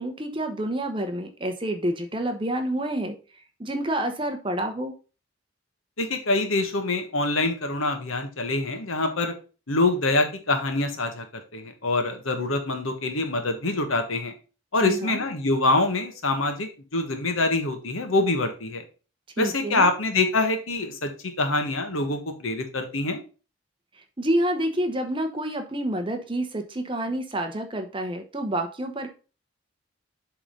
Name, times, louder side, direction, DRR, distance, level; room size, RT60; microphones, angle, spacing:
voice 1, 0.0-3.1 3.6-4.9 14.8-15.2 19.4-19.9 24.2-29.1, right 1 dB, 25° right, 6 dB, 0.9 m, -28 dB
voice 2, 6.0-9.3 9.7-14.3 14.7-18.8 19.4-23.2, left 2 dB, 80° left, 6 dB, 1.4 m, -25 dB
7.4 x 3.8 x 5.2 m, 0.35 s
head